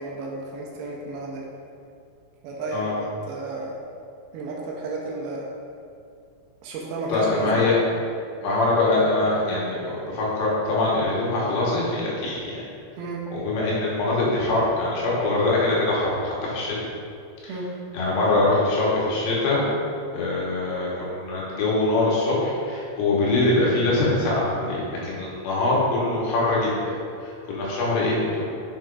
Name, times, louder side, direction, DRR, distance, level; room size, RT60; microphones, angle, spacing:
voice 1, 0.0-1.5 2.4-2.9 3.3-3.8 4.3-5.5 6.6-7.7 13.0-13.2 17.5-17.7, right 3 dB, 80° right, -2 dB, 2.5 m, -32 dB
voice 2, 7.1-7.8 8.4-12.6 13.3-16.9 17.4-17.5 17.9-19.6 20.1-26.9 27.2-28.5, left 2 dB, 90° left, -5 dB, 3.3 m, -23 dB
7.2 x 5.9 x 2.4 m, 2.5 s
omnidirectional pair, 4.6 m